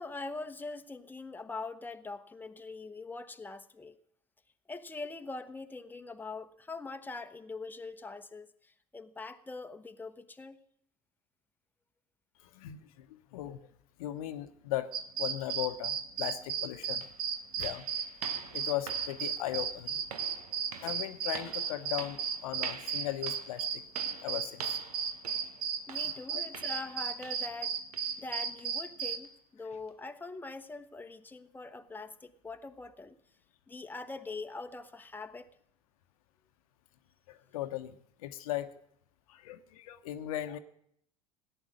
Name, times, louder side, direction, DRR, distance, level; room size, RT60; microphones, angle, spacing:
voice 1, 0.0-4.0 4.7-8.5 8.9-10.6 25.9-27.8 28.2-33.2 33.7-35.5, left 3 dB, 10° left, 1.0 m, -43 dB
voice 2, 12.5-13.1 13.3-13.6 14.0-14.9 15.2-17.0 17.6-17.9 18.5-20.1 20.8-23.8 24.2-24.8 26.3-26.4 37.3-37.9 38.2-38.7 39.3-40.6, left 13 dB, 70° left, 1.0 m, -37 dB
sound 1, 14.9-29.2, right 7 dB, 50° right, 1.6 m, -34 dB
sound 2, 16.4-16.5 17.0-27.6 27.9-28.2 28.6-28.8 29.2-29.3 29.9-30.0, right 7 dB, 80° right, 0.9 m, -48 dB
18.0 x 9.8 x 6.5 m
figure-of-eight pair, 70°, 19 cm